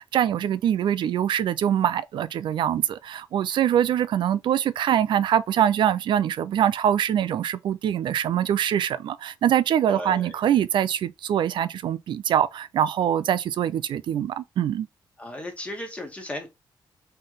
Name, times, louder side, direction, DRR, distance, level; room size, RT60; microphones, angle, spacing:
voice 1, 0.0-14.9, right 10 dB, 75° right, 0.4 m, -23 dB
voice 2, 9.9-10.4 15.2-16.5, left 1 dB, 15° left, 1.3 m, -35 dB
3.9 x 3.2 x 3.9 m
wide cardioid pair, 145°, 8 cm